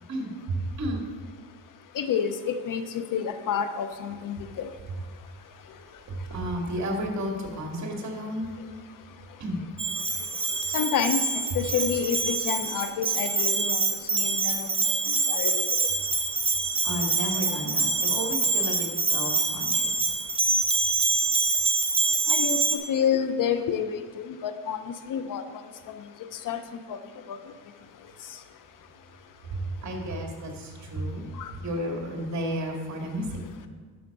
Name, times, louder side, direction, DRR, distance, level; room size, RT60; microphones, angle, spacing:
voice 1, 0.1-1.0 6.1-8.5 9.4-9.6 16.8-20.1 29.5-31.3 31.6-33.4, right 1 dB, 40° right, 1 dB, 2.3 m, -32 dB
voice 2, 2.0-4.7 10.7-13.8 14.1-14.7 15.1-15.7 22.3-24.8 25.1-25.4 26.4-26.6 26.9-27.0 27.3-27.4 31.4-31.5, left 7 dB, 50° left, 9 dB, 0.7 m, -29 dB
Bell, 9.8-22.8, right 3 dB, 15° right, 1.2 m, -25 dB
10.0 x 6.5 x 5.9 m, 1.5 s
cardioid pair, 110°, 42 cm